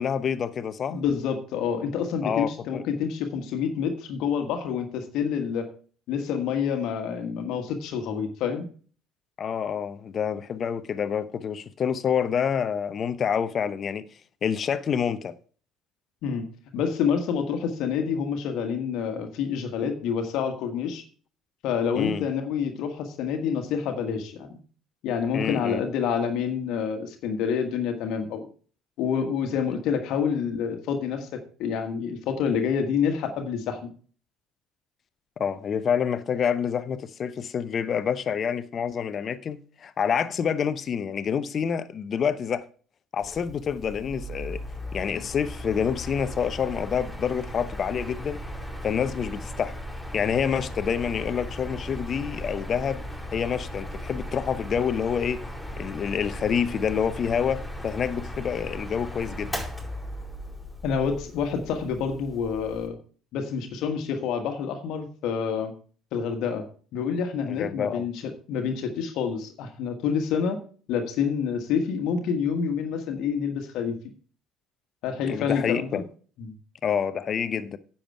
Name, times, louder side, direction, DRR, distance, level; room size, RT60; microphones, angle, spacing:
voice 1, 0.0-1.0 2.2-2.8 9.4-14.0 14.4-15.3 21.9-22.3 25.3-25.8 35.4-42.6 43.1-44.6 44.9-48.4 48.8-49.7 50.1-53.0 53.3-55.4 55.8-59.5 67.5-68.1 75.3-76.0 76.8-77.8, left 7 dB, 45° left, 0.8 m, -27 dB
voice 2, 0.9-5.7 6.1-8.7 16.2-16.5 16.7-21.0 21.6-24.6 25.0-28.5 29.0-33.8 60.8-63.0 63.3-65.7 66.1-66.7 66.9-70.6 70.9-74.0 75.0-76.0 76.4-76.5, left 7 dB, 65° left, 1.5 m, -28 dB
Mechanical fan, 43.2-62.9, left 1 dB, ahead, 4.6 m, -37 dB
10.0 x 7.2 x 4.7 m
hypercardioid pair, 55°, 0 cm